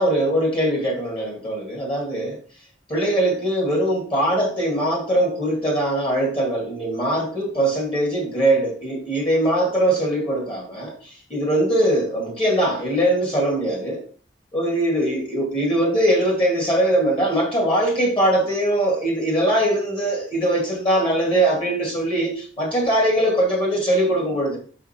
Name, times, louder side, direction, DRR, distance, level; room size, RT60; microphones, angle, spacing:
voice 1, 0.0-2.4 2.9-14.0 14.5-24.6, right 1 dB, 30° left, 0 dB, 2.2 m, -21 dB
5.9 x 5.6 x 4.4 m, 0.42 s
head